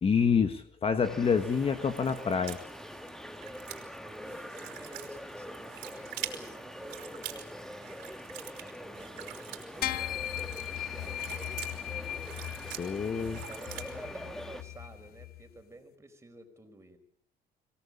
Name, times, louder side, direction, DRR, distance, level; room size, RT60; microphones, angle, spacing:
voice 1, 0.0-2.6 12.8-13.4, left 6 dB, 35° left, 9 dB, 1.5 m, -27 dB
sound 1, 1.0-14.6, equal, 5° left, 1.7 m, -44 dB
sound 2, 1.2-13.9, right 13 dB, 85° right, 4.1 m, -46 dB
voice 2, 4.0-8.0 8.6-12.3 13.1-17.0, right 2 dB, 15° right, 6 dB, 4.7 m, -52 dB
sound 3, 9.8-15.4, left 13 dB, 65° left, 1.1 m, -38 dB
25.0 x 17.5 x 8.6 m, 0.67 s
cardioid pair, 110°, 17 cm